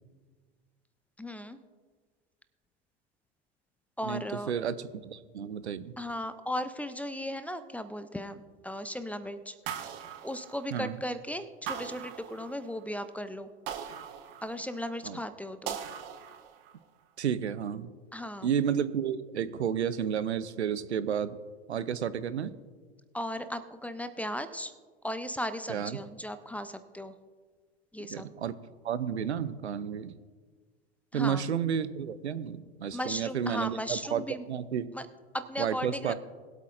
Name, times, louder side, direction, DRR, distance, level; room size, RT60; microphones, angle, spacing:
voice 1, 1.2-1.6 4.0-4.5 6.0-9.8 10.2-13.5 14.4-15.8 18.1-18.5 23.1-24.7 25.0-27.1 27.9-28.3 31.1-31.4 32.9-34.4 34.9-35.1 35.3-36.1, equal, 5° left, 12 dB, 0.5 m, -36 dB
voice 2, 4.0-5.9 10.7-11.0 15.0-15.2 17.2-17.9 18.4-21.4 21.7-22.5 25.7-26.0 28.1-28.6 28.8-30.2 31.1-34.9 35.6-36.1, right 8 dB, 80° right, 16 dB, 0.7 m, -31 dB
sound 1, 9.7-11.0 11.7-12.8 13.7-14.9 15.7-16.8, right 8 dB, 55° right, 1.4 m, -40 dB
21.5 x 8.2 x 2.5 m, 1.5 s
figure-of-eight pair, 85°, 33 cm